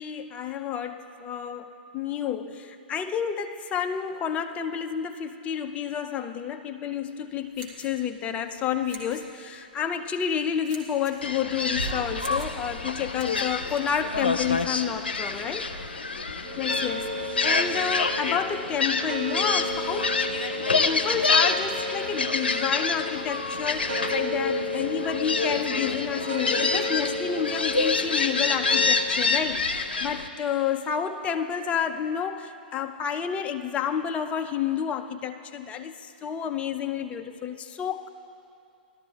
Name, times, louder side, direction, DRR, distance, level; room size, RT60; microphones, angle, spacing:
voice 1, 0.0-15.6 16.6-20.2 20.7-38.1, left 8 dB, 25° left, 7 dB, 0.6 m, -30 dB
sound 1, 7.3-14.7, right 3 dB, 45° right, 2.2 m, -48 dB
Gull seagull, 11.2-30.3, left 4 dB, 85° left, 0.6 m, -27 dB
sound 2, 16.4-28.9, left 1 dB, 60° right, 1.4 m, -34 dB
19.5 x 13.0 x 2.4 m, 2.6 s
figure-of-eight pair, 110°, 5 cm